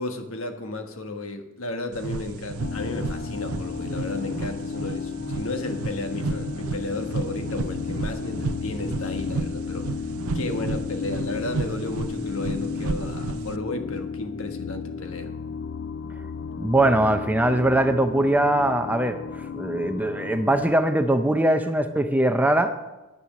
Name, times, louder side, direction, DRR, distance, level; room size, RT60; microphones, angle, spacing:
voice 1, 0.0-10.1 10.3-15.3, left 2 dB, 75° left, 6 dB, 1.4 m, -33 dB
sound 1, 1.9-13.6, right 4 dB, 90° right, 0.6 m, -32 dB
sound 2, 2.6-20.7, left 6 dB, 50° left, 0.4 m, -33 dB
voice 2, 16.6-19.2 19.5-22.7, right 1 dB, 5° right, 8 dB, 0.5 m, -21 dB
10.5 x 9.7 x 6.2 m, 1.1 s
head